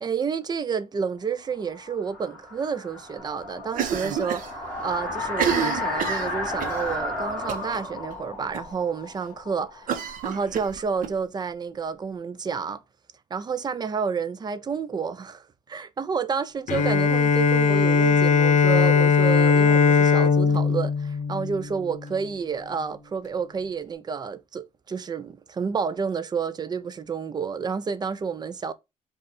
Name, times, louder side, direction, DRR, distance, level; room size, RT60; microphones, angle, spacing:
voice 1, 0.0-4.4 4.8-12.8 13.3-28.7, right 6 dB, 30° right, 0.5 m, -30 dB
sound 1, 1.4-10.3, left 2 dB, 10° left, 2.0 m, -33 dB
Cough, 3.7-4.5 4.8-4.9 5.3-6.8 7.5-7.8 8.1-8.2 8.5-8.6 9.9-11.1, right 8 dB, 85° right, 0.9 m, -28 dB
Bowed string instrument, 16.7-22.2, left 5 dB, 65° left, 0.7 m, -20 dB
5.2 x 2.4 x 4.0 m
cardioid pair, 130°, 14 cm